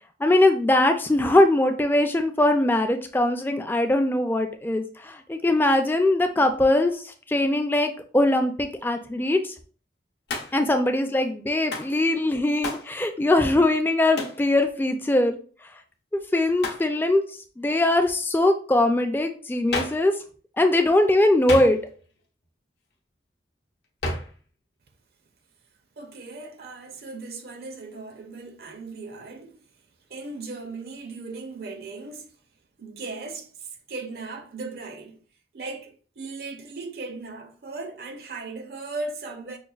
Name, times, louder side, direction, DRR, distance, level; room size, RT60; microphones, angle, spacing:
voice 1, 0.2-9.5 10.5-15.4 16.3-17.2 17.6-20.1 20.6-21.8, left 1 dB, 10° left, 0.3 m, -21 dB
Hands, 10.3-10.7 11.7-12.0 12.6-12.9 14.2-14.4 16.6-16.9 19.7-20.1 21.5-22.1 24.0-24.4, left 2 dB, 65° left, 0.7 m, -31 dB
voice 2, 26.0-29.6 30.1-32.3 32.8-35.2 35.5-39.6, right 3 dB, 60° right, 0.5 m, -37 dB
5.5 x 2.3 x 2.3 m
head